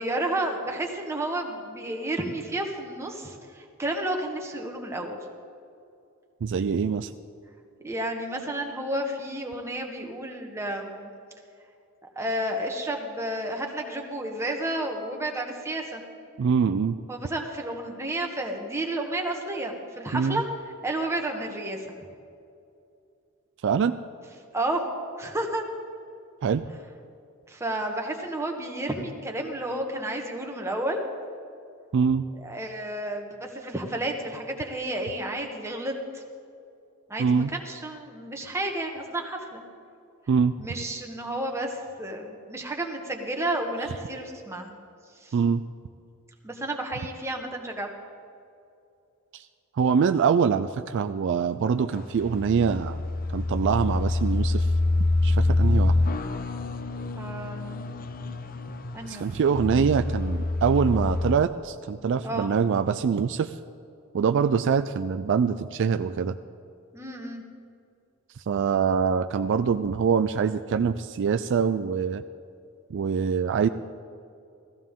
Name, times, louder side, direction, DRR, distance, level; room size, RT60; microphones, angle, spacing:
voice 1, 0.0-5.2 7.8-11.1 12.1-16.0 17.1-20.5 20.8-21.8 24.5-24.8 25.2-25.6 27.5-31.0 32.4-36.2 37.1-39.6 40.6-44.7 45.2-45.3 46.4-47.9 57.2-57.8 58.9-59.3 62.2-62.5 66.9-67.4, right 1 dB, 10° right, 2 dB, 1.3 m, -31 dB
voice 2, 6.4-7.1 16.4-17.0 20.1-20.4 23.6-23.9 26.4-26.7 31.9-32.2 37.2-37.5 40.3-40.5 45.3-45.6 49.3-49.5 49.8-53.0 53.3-54.7 55.2-56.0 59.0-63.6 64.1-66.4 68.4-72.2 72.9-73.7, right 6 dB, 55° right, 10 dB, 0.3 m, -24 dB
sound 1, 51.9-61.4, left 2 dB, 40° left, 0.6 m, -26 dB
16.5 x 14.5 x 3.7 m, 2.5 s
head